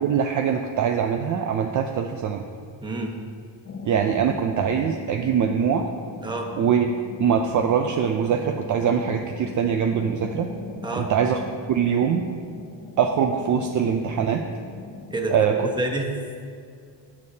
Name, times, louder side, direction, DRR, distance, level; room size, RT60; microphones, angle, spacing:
voice 1, 0.0-2.4 3.8-5.8 6.6-6.9 7.2-10.5 10.9-11.4 11.7-12.2 13.0-14.4 15.3-15.7, right 7 dB, 45° right, 4 dB, 0.5 m, -23 dB
voice 2, 2.8-3.1 6.2-6.5 10.8-11.1 15.1-16.1, right 1 dB, 10° right, 1 dB, 1.0 m, -28 dB
sound 1, 3.7-15.2, left 4 dB, 30° left, 0.8 m, -41 dB
17.5 x 6.5 x 2.8 m, 2.2 s
cardioid pair, 155°, 43 cm